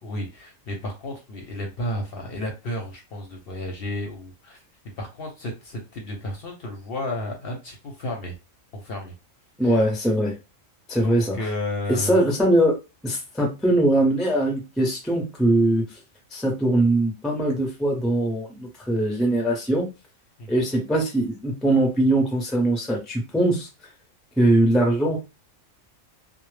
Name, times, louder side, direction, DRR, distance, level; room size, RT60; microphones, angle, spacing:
voice 1, 0.0-4.6 5.0-8.4 8.7-9.1 9.6-9.8 11.0-12.2 20.4-20.6, left 1 dB, 60° left, 2 dB, 0.7 m, -32 dB
voice 2, 9.6-10.4 10.9-11.4 11.9-12.8 13.0-15.9 16.3-19.9 20.5-23.7 24.4-25.2, right 1 dB, ahead, 0 dB, 0.4 m, -21 dB
2.1 x 2.0 x 3.1 m, 0.27 s
omnidirectional pair, 1.3 m